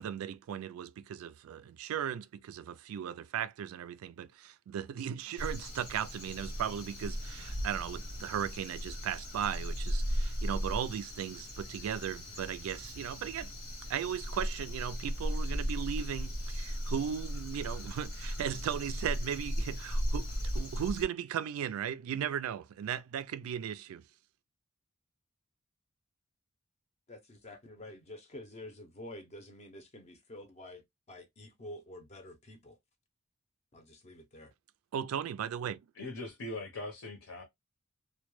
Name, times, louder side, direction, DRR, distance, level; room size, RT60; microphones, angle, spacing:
voice 1, 0.0-13.5 13.9-24.0 34.9-35.8, right 9 dB, 85° right, 0.3 m, -37 dB
Crow, 5.4-21.0, equal, 90° left, 1.1 m, -37 dB
voice 2, 27.1-30.8 31.1-32.8 33.7-34.5, left 1 dB, 30° left, 0.5 m, -48 dB
voice 3, 35.9-37.4, left 2 dB, 70° left, 0.7 m, -40 dB
2.1 x 2.1 x 3.0 m
head